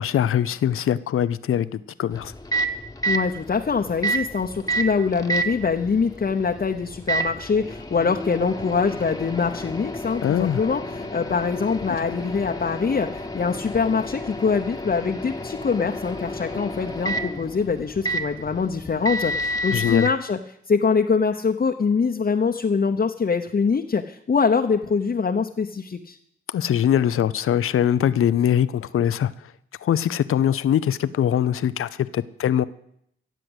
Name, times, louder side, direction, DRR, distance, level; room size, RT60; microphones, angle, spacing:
voice 1, 0.0-2.3 10.2-10.6 19.7-20.1 26.5-29.3 29.8-32.6, left 10 dB, 85° left, 15 dB, 0.6 m, -22 dB
Microwave oven, 2.1-20.1, right 1 dB, 15° left, 1.3 m, -30 dB
voice 2, 3.1-20.4 20.7-26.2, left 5 dB, 45° left, 3 dB, 0.9 m, -24 dB
15.5 x 7.6 x 8.1 m, 0.73 s
cardioid pair, 60°, 21 cm